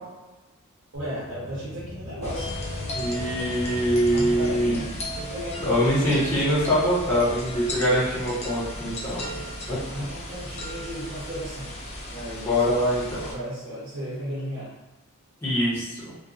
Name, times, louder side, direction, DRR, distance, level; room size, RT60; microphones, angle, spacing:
sound 1, 0.9-12.0, left 1 dB, 75° left, 0.6 m, -41 dB
voice 1, 0.9-2.6 4.1-5.9 9.8-11.7 12.1-12.9 13.2-14.7, equal, 60° right, -8 dB, 0.8 m, -35 dB
sound 2, 2.2-13.3, equal, 30° left, 0.5 m, -36 dB
voice 2, 2.9-4.8 5.6-9.3 9.7-9.8 12.4-13.2 15.4-16.1, equal, 10° left, -12 dB, 1.1 m, -23 dB
2.6 x 2.5 x 2.4 m, 1.1 s
head